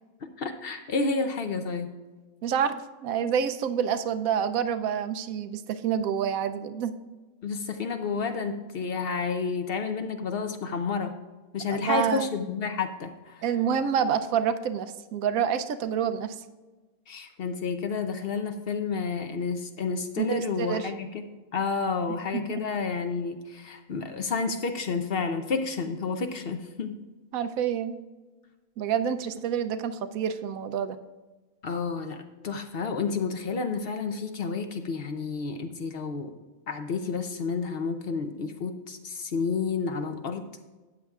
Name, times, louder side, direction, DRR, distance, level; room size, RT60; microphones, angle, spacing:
voice 1, 0.4-1.9 7.4-11.1 11.5-13.4 17.1-21.2 21.5-27.0 31.6-36.3 36.7-40.4, left 5 dB, 55° left, 7 dB, 0.7 m, -30 dB
voice 2, 2.4-6.9 11.7-12.3 13.4-16.4 20.2-20.9 22.3-22.6 27.3-28.0 28.8-31.0, right 8 dB, 85° right, 10 dB, 1.0 m, -28 dB
12.5 x 8.9 x 2.4 m, 1.2 s
omnidirectional pair, 1.5 m